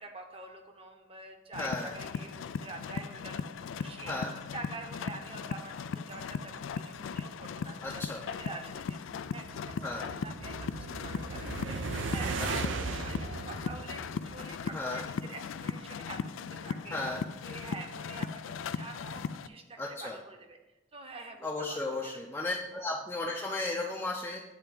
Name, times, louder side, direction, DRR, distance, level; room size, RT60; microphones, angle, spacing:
voice 1, 0.0-9.0 9.3-9.9 10.2-11.8 12.1-16.3 16.6-17.0 17.4-20.6 20.9-22.1, right 3 dB, 30° right, 4 dB, 0.9 m, -46 dB
sound 1, 1.5-19.5, left 6 dB, 80° left, 0.3 m, -38 dB
voice 2, 1.6-1.9 4.1-4.3 7.8-8.2 9.8-10.1 12.4-12.7 14.7-15.0 16.9-17.2 19.8-20.2 21.4-24.4, left 2 dB, 15° left, -2 dB, 0.5 m, -35 dB
sound 2, 9.3-14.8, right 4 dB, 70° right, 0.5 m, -37 dB
8.7 x 3.4 x 6.7 m, 1.1 s
head